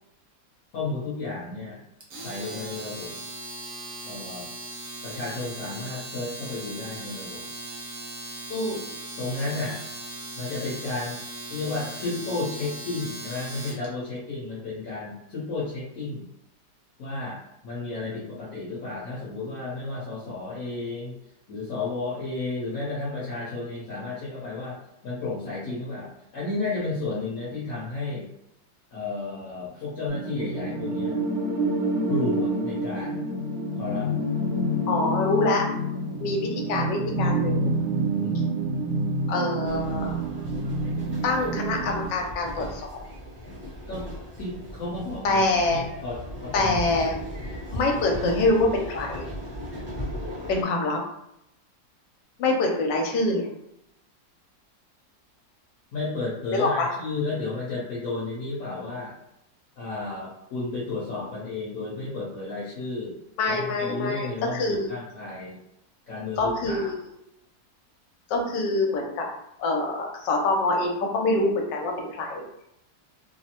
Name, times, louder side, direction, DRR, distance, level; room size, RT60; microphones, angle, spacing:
voice 1, 0.7-1.8 2.1-3.1 4.0-4.5 5.0-7.4 9.2-9.8 10.4-11.2 11.5-16.2 17.0-17.4 17.6-21.1 21.5-24.8 25.0-28.3 28.9-31.1 32.1-33.2 33.8-34.1 38.1-38.6 43.9-44.1 44.4-45.4 45.7-46.2 46.4-46.7 55.9-59.1 59.8-63.1 63.5-65.6 66.1-66.9, left 3 dB, 55° left, -8 dB, 1.1 m, -32 dB
Domestic sounds home sounds, 2.0-13.9, right 2 dB, 60° right, 1.0 m, -38 dB
voice 2, 8.5-8.8 34.9-35.6 36.2-37.7 39.3-40.2 41.2-43.0 45.2-45.8 46.5-47.2 47.7-49.3 50.5-51.0 52.4-53.5 56.5-56.9 63.4-64.9 66.4-67.1 68.3-69.3 69.6-72.4, left 2 dB, 75° left, 1 dB, 1.2 m, -25 dB
sound 1, 30.1-42.1, right 1 dB, 85° right, 1.5 m, -27 dB
sound 2, 39.6-50.6, equal, 10° left, 0.6 m, -37 dB
3.3 x 2.0 x 2.8 m, 0.81 s
omnidirectional pair, 2.0 m